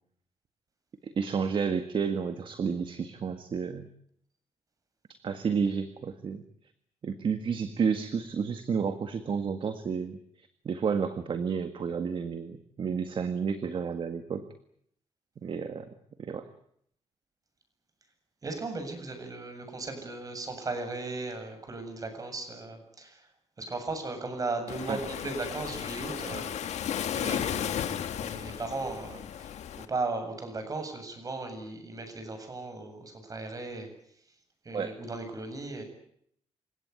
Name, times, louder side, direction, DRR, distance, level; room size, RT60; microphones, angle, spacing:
voice 1, 1.0-3.9 5.2-6.4 7.0-14.5 15.4-16.5 24.9-25.0 34.7-35.0, right 6 dB, 50° right, 9 dB, 1.8 m, -31 dB
voice 2, 18.4-23.3 23.6-26.5 26.8-27.9 28.2-33.9 34.6-35.8, right 3 dB, 30° right, 7 dB, 7.6 m, -37 dB
Waves surf, 24.7-29.9, left 9 dB, 85° left, 1.9 m, -34 dB
28.5 x 17.5 x 9.6 m, 0.69 s
cardioid pair, 130°, 11 cm